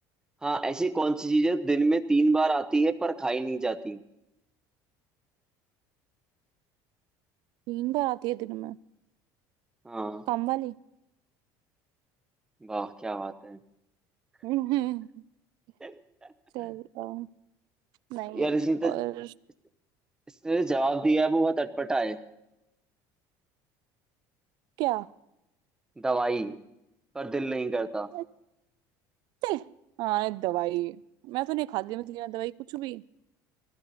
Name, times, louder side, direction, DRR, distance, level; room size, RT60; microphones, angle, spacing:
voice 1, 0.4-4.0 9.8-10.2 12.6-13.6 15.8-16.0 18.3-19.0 20.4-22.2 26.0-26.6 27.1-28.1, right 2 dB, 10° right, 9 dB, 0.7 m, -27 dB
voice 2, 7.7-8.8 10.3-10.7 14.4-15.1 16.5-17.3 18.1-18.5 18.8-19.3 24.8-25.1 28.1-28.2 29.4-29.7 30.0-33.0, right 18 dB, 60° right, 19 dB, 0.4 m, -31 dB
20.5 x 15.0 x 4.1 m, 0.86 s
cardioid pair, 145°, 8 cm